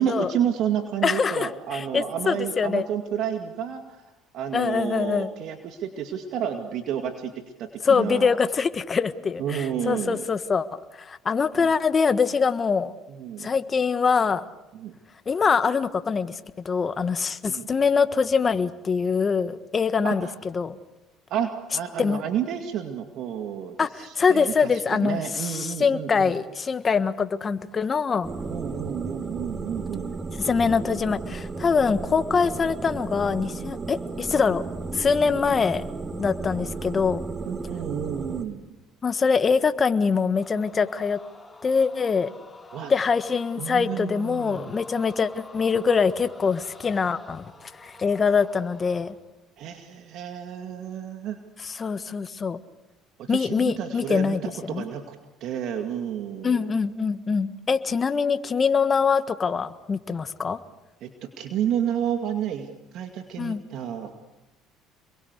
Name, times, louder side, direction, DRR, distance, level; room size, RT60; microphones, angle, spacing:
voice 1, 0.0-4.0 4.3-7.3 7.6-8.4 9.4-10.3 13.1-13.5 14.7-14.9 17.5-17.7 20.0-20.3 21.3-26.3 28.5-30.2 37.5-38.7 42.7-42.9 43.6-44.8 49.6-51.4 53.2-55.2 55.4-56.7 61.0-61.1 61.4-62.7 62.9-64.1, right 9 dB, 65° right, 6 dB, 2.2 m, -30 dB
voice 2, 1.0-2.8 4.5-5.3 7.8-12.9 13.4-14.4 15.3-16.4 16.6-20.3 20.5-20.8 22.0-22.2 23.8-28.3 30.4-34.6 34.9-35.8 36.2-37.3 39.0-41.2 41.6-42.3 42.9-49.1 51.6-52.6 53.3-54.9 56.4-60.6 63.4-63.6, left 5 dB, 35° left, 11 dB, 1.5 m, -24 dB
sound 1, 28.2-38.4, right 3 dB, 25° right, 2.3 m, -34 dB
sound 2, 40.3-49.2, left 2 dB, 10° left, 5.6 m, -47 dB
28.5 x 22.5 x 8.3 m, 1.0 s
supercardioid pair, 80°, 0 cm